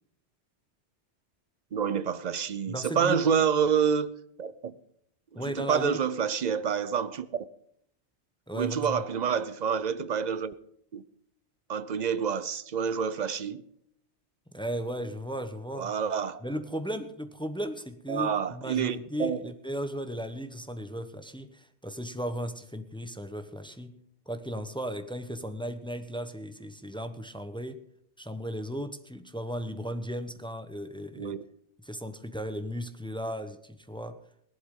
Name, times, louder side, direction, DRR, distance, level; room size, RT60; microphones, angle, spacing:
voice 1, 1.7-4.1 4.4-4.7 5.3-7.3 8.5-10.5 10.9-11.0 11.7-13.6 15.8-16.4 18.1-19.4 31.2-31.4, right 7 dB, 45° right, 0.7 m, -28 dB
voice 2, 2.7-3.2 5.3-6.0 8.5-9.0 14.5-15.9 16.4-27.8 28.2-31.4 31.8-34.2, equal, 5° left, 0.8 m, -36 dB
17.5 x 11.5 x 3.7 m
omnidirectional pair, 1.2 m